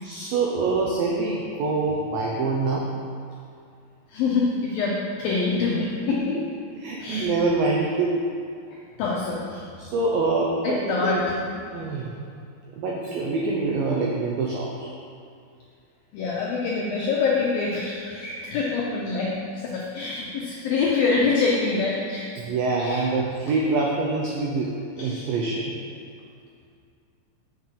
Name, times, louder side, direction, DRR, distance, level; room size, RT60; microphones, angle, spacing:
voice 1, 0.0-2.9 6.3-6.4 6.8-8.2 9.8-11.2 11.7-12.2 12.8-14.9 22.4-24.7 25.0-25.7, right 3 dB, 85° right, -2 dB, 2.0 m, -25 dB
voice 2, 4.1-6.4 7.0-7.3 8.7-9.6 10.6-11.2 16.1-22.3 22.8-23.1 25.0-25.3, left 4 dB, 85° left, -3 dB, 2.0 m, -25 dB
6.7 x 6.1 x 7.4 m, 2.4 s
omnidirectional pair, 5.2 m